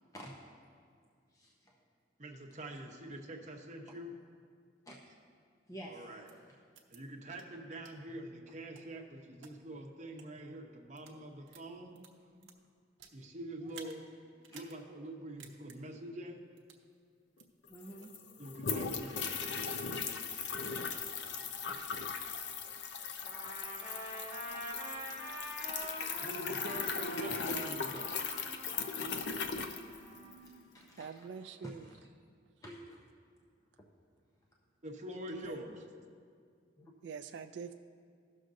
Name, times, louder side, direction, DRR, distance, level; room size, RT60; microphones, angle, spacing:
voice 1, 1.3-1.8 3.9-4.0 4.8-5.0 5.7-6.3 12.3-12.5 13.6-13.7 14.5-14.7 17.7-18.1 21.7-21.8 25.7-26.2 30.4-31.2 31.6-32.0 32.6-33.1 36.8-36.9, equal, 20° left, -2 dB, 0.6 m, -51 dB
voice 2, 2.2-4.1 5.9-6.3 6.9-12.0 13.1-16.4 18.4-19.4 26.2-28.2 34.8-35.8, right 1 dB, 40° right, 1 dB, 0.9 m, -45 dB
sound 1, 6.3-6.4 6.7-7.0 7.4-7.5 7.8-7.9 8.5-9.5 10.1-10.3 10.8-11.2 11.5-13.2 13.7-14.0 14.4-14.8 15.1-15.2 15.4-15.8 16.6-16.8 17.4-17.5 18.0-18.2 18.7-18.9 19.3-19.4 19.8-20.3 20.7-21.2, right 7 dB, 85° right, 0.9 m, -55 dB
sound 2, 17.4-17.5 17.7-30.5, left 5 dB, 65° left, 0.5 m, -38 dB
Trumpet, 23.2-30.3, equal, 45° left, 1.7 m, -46 dB
voice 3, 30.1-30.7 31.0-31.9 35.4-35.6 37.0-37.7, right 6 dB, 70° right, 8 dB, 0.3 m, -46 dB
16.5 x 6.4 x 2.6 m, 2.1 s
head